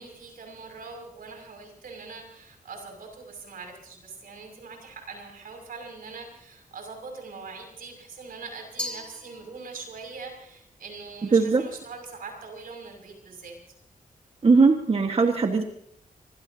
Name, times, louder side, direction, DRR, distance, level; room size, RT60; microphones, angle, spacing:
voice 1, 0.0-13.5, right 4 dB, 85° right, 3 dB, 6.2 m, -42 dB
Glass, 8.8-10.0, left 1 dB, 5° left, 2.8 m, -37 dB
voice 2, 11.3-11.6 14.4-15.6, right 4 dB, 45° right, 4 dB, 1.5 m, -19 dB
25.0 x 20.5 x 2.8 m, 0.73 s
cardioid pair, 80°, 14 cm